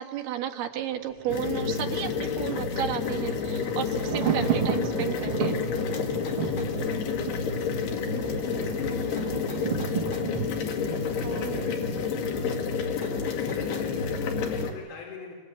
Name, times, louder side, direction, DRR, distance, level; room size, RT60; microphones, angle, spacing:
voice 1, 0.0-5.6 11.2-11.8, right 10 dB, 75° right, 4 dB, 3.6 m, -33 dB
Thunder, 1.1-12.1 12.4-12.5, right 8 dB, 50° right, 1.8 m, -34 dB
sound 1, 1.3-14.7, left 5 dB, 85° left, 4.2 m, -29 dB
sound 2, 5.9-6.8 9.2-10.3 13.0-13.9, left 2 dB, 25° left, 2.9 m, -45 dB
voice 2, 6.2-15.3, left 5 dB, 65° left, -2 dB, 5.9 m, -46 dB
26.0 x 23.0 x 9.0 m, 1.3 s
omnidirectional pair, 4.6 m